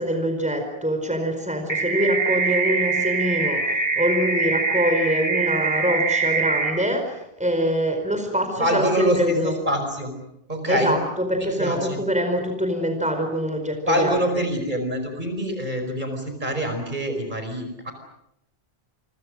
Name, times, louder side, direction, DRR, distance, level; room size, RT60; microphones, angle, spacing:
voice 1, 0.0-9.6 10.7-14.2, equal, 5° right, 5 dB, 4.9 m, -24 dB
sound 1, 1.7-6.7, right 4 dB, 25° left, 4.9 m, -23 dB
voice 2, 8.6-10.1 10.5-11.0 11.3-12.0 13.8-17.9, equal, 50° right, 5 dB, 5.3 m, -25 dB
28.5 x 25.0 x 6.5 m, 0.79 s
omnidirectional pair, 1.0 m